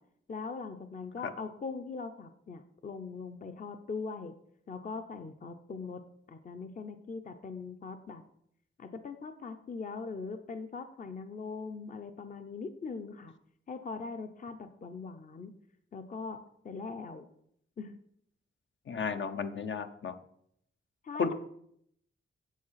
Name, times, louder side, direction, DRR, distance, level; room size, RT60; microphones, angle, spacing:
voice 1, 0.3-4.3 4.7-6.0 6.3-8.2 8.8-13.3 13.7-15.5 15.9-17.3 17.8-18.0 21.0-21.3, left 4 dB, 40° left, 9 dB, 0.7 m, -41 dB
voice 2, 18.9-20.1 21.2-21.3, left 6 dB, 65° left, 9 dB, 0.9 m, -33 dB
9.3 x 7.5 x 5.7 m, 0.70 s
wide cardioid pair, 155°, 21 cm